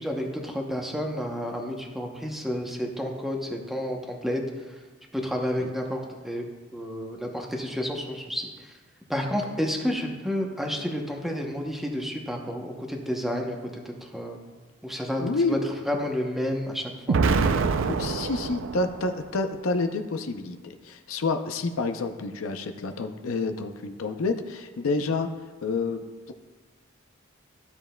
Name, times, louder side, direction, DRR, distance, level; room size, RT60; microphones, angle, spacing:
voice 1, 0.0-4.8 5.1-6.5 6.7-8.7 9.1-14.4 14.8-15.2 15.5-15.6 15.9-17.2, equal, ahead, 1 dB, 0.7 m, -30 dB
voice 2, 15.2-15.7 17.2-17.5 17.8-25.3 25.6-26.3, left 3 dB, 80° left, 7 dB, 0.5 m, -29 dB
Explosion, 17.1-19.2, right 4 dB, 65° right, 0.4 m, -25 dB
12.5 x 7.1 x 2.2 m, 1.4 s
head